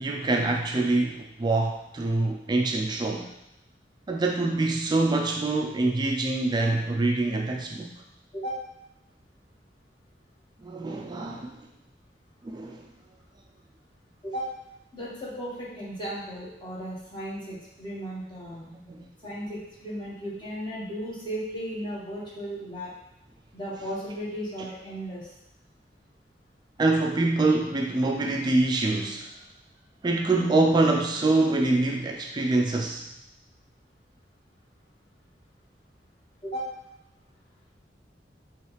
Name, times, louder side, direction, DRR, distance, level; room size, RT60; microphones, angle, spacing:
voice 1, 0.0-3.3 4.1-7.9 10.6-11.6 12.4-12.9 18.5-19.0 26.8-29.3 30.0-33.1, right 2 dB, 25° right, 2 dB, 0.3 m, -25 dB
voice 2, 8.3-8.6 14.2-14.5 14.9-18.6 19.2-22.9 23.5-25.3 36.4-36.7, equal, 25° left, -8 dB, 1.4 m, -35 dB
4.6 x 3.1 x 3.2 m, 0.82 s
head